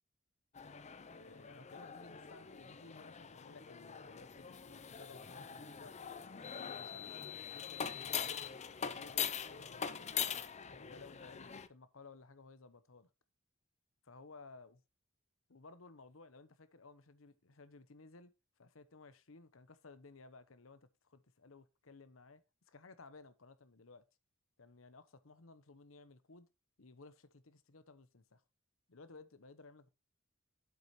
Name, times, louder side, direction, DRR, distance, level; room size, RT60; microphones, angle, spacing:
sound 1, 0.5-11.7, left 8 dB, 35° left, 0.6 m, -43 dB
voice 1, 1.1-6.0 6.5-10.1 10.7-13.1 14.0-14.8 15.5-24.0 24.6-26.5 26.8-28.4 28.9-29.9, left 3 dB, 85° left, 1.0 m, -58 dB
8.2 x 7.8 x 3.1 m
head